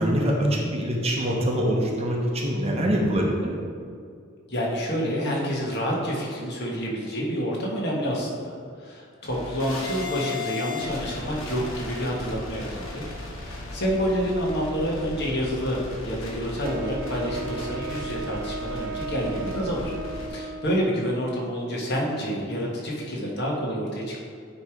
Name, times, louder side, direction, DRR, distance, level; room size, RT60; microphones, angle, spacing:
voice 1, 0.0-3.5, equal, 30° right, -1 dB, 0.9 m, -24 dB
voice 2, 4.5-8.5 8.8-13.0 13.3-19.9 20.3-24.2, equal, 55° left, -3 dB, 1.5 m, -28 dB
sound 1, 9.3-20.3, left 2 dB, 75° left, 1.6 m, -36 dB
Wind instrument woodwind instrument, 16.6-21.1, right 4 dB, 45° right, 0.3 m, -35 dB
9.2 x 3.2 x 4.9 m, 2.3 s
head